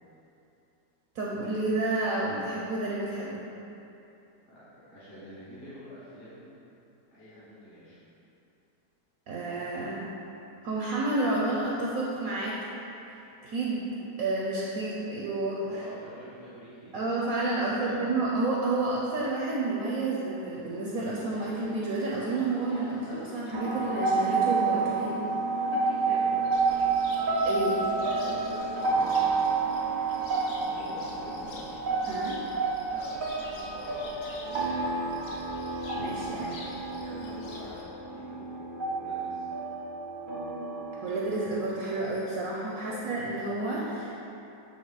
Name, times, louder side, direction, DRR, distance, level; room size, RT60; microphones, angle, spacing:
voice 1, 1.1-3.4 9.3-10.1 10.6-12.6 13.4-15.8 16.9-25.2 27.4-27.8 32.0-32.4 35.9-36.6 41.0-44.2, right 2 dB, 65° right, -4 dB, 1.0 m, -30 dB
voice 2, 4.5-6.5 7.1-8.0 15.6-18.1 26.0-26.5 28.0-29.5 30.5-31.7 32.9-35.2 37.0-39.4 42.1-42.2 42.7-43.0, equal, 35° left, -11 dB, 1.4 m, -47 dB
sound 1, 20.3-32.7, equal, 55° left, 1.3 m, -47 dB
sound 2, 23.5-41.7, right 4 dB, 90° right, 0.4 m, -30 dB
Cricket, 26.5-37.8, left 2 dB, 85° left, 1.4 m, -48 dB
7.7 x 3.3 x 4.0 m, 2.8 s
omnidirectional pair, 1.9 m